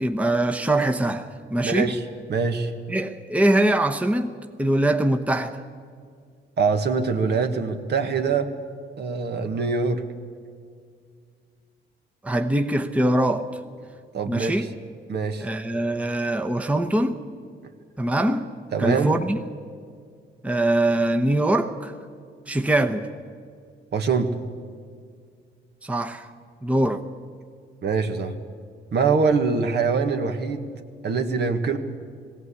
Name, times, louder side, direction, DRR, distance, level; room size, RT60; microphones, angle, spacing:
voice 1, 0.0-2.0 2.9-5.6 12.2-13.5 14.3-14.7 15.4-17.2 18.0-18.5 18.8-19.4 20.4-21.9 22.5-23.1 25.8-26.3 26.6-27.0, right 1 dB, 5° right, 1.0 m, -23 dB
voice 2, 1.6-2.0 2.3-2.7 6.6-8.5 9.0-10.0 14.1-14.7 15.1-15.5 18.7-19.1 23.9-24.3 27.8-28.3 28.9-30.7 31.0-31.8, right 5 dB, 60° right, 1.6 m, -23 dB
19.0 x 16.5 x 8.4 m
cardioid pair, 90°, 20 cm